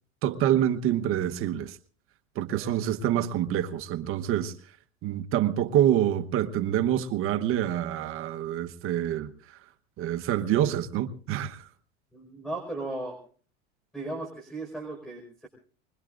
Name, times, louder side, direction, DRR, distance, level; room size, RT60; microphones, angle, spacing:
voice 1, 0.2-1.8 2.3-4.5 5.0-9.6 10.0-11.7, right 11 dB, 45° right, 1.2 m, -26 dB
voice 2, 12.1-13.2 13.9-15.5, right 2 dB, ahead, 5.1 m, -36 dB
24.5 x 22.0 x 2.6 m
supercardioid pair, 130°, 30 cm